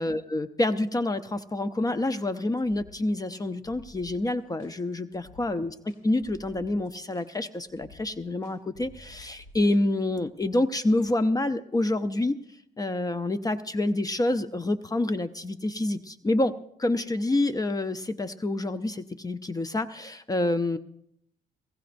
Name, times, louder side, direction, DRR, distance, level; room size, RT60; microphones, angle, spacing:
voice 1, 0.0-12.4 12.8-16.5 16.8-20.8, left 2 dB, 20° left, 11 dB, 0.6 m, -27 dB
sound 1, 2.6-9.8, left 2 dB, 85° left, 3.1 m, -52 dB
21.0 x 16.5 x 2.6 m, 0.72 s
cardioid pair, 95°, 17 cm